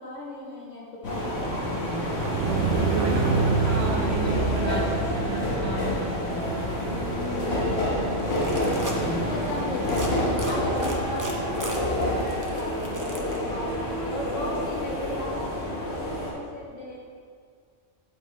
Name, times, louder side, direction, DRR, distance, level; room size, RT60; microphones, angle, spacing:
voice 1, 0.0-3.6 7.4-8.8 9.2-10.0 10.5-17.0, left 1 dB, 80° left, -4 dB, 1.8 m, -37 dB
sound 1, 1.0-16.3, equal, 60° left, 1.7 m, -28 dB
sound 2, 2.2-5.4, right 4 dB, 75° right, 1.0 m, -26 dB
voice 2, 2.6-6.1, right 4 dB, 60° right, -2 dB, 1.4 m, -32 dB
sound 3, 8.2-9.0 9.8-10.1 10.4-13.4, right 2 dB, 20° right, 0.7 m, -36 dB
10.0 x 5.3 x 4.1 m, 2.1 s
omnidirectional pair, 1.2 m